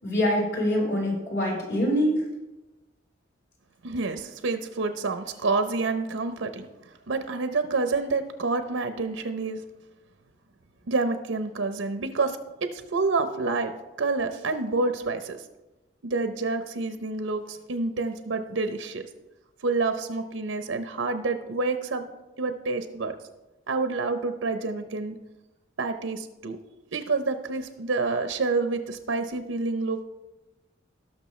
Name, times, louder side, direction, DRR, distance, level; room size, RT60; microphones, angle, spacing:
voice 1, 0.0-2.2, equal, 60° left, -3 dB, 4.0 m, -24 dB
voice 2, 3.8-6.7 7.1-9.6 10.9-12.4 12.7-13.7 14.0-15.4 16.0-19.0 19.6-22.1 22.4-23.1 23.7-25.2 25.8-26.6 26.9-30.0, right 3 dB, 85° right, 8 dB, 0.7 m, -28 dB
18.0 x 6.2 x 3.2 m, 1.0 s
head